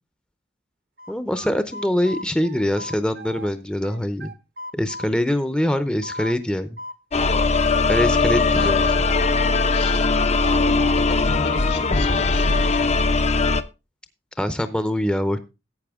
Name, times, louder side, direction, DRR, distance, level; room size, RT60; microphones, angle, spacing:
sound 1, 1.0-3.5 3.8-6.4 6.8-9.3 9.7-12.3, right 1 dB, 60° right, 0.8 m, -37 dB
voice 1, 1.1-4.3 4.7-6.8 7.9-8.9 14.4-15.4, left 1 dB, 5° left, 10 dB, 0.6 m, -23 dB
sound 2, 7.1-13.6, left 3 dB, 40° left, 0.6 m, -20 dB
voice 2, 9.7-10.1 10.5-12.9, left 2 dB, 75° left, 7 dB, 1.9 m, -35 dB
12.0 x 8.4 x 3.6 m, 0.28 s
head